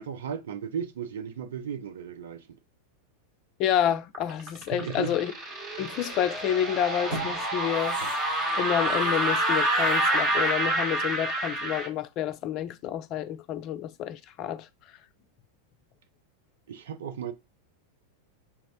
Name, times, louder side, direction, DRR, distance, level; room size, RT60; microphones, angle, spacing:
voice 1, 0.0-2.6 4.7-5.2 16.7-17.3, right 8 dB, 60° right, 0.4 m, -35 dB
voice 2, 3.6-5.3 5.8-8.0 8.6-14.7, left 10 dB, 40° left, 0.4 m, -29 dB
sound 1, 4.1-11.9, right 1 dB, 35° right, 1.1 m, -27 dB
sound 2, 6.3-6.5 6.9-11.6 12.0-12.1, right 1 dB, 75° right, 2.2 m, -43 dB
5.6 x 2.1 x 2.6 m
figure-of-eight pair, 90°, 0 cm